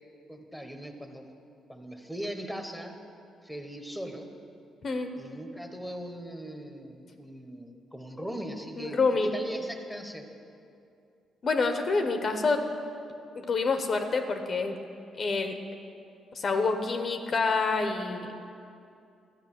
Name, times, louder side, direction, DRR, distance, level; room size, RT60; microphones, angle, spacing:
voice 1, 0.3-1.3 1.7-3.0 3.4-4.3 5.2-9.0 9.3-10.3, equal, ahead, 5 dB, 1.1 m, -39 dB
voice 2, 8.8-9.3 11.4-12.7 13.3-14.8 15.2-15.6 16.3-18.3, left 4 dB, 45° left, 6 dB, 0.9 m, -27 dB
12.5 x 5.3 x 9.0 m, 2.5 s
cardioid pair, 90°, 0 cm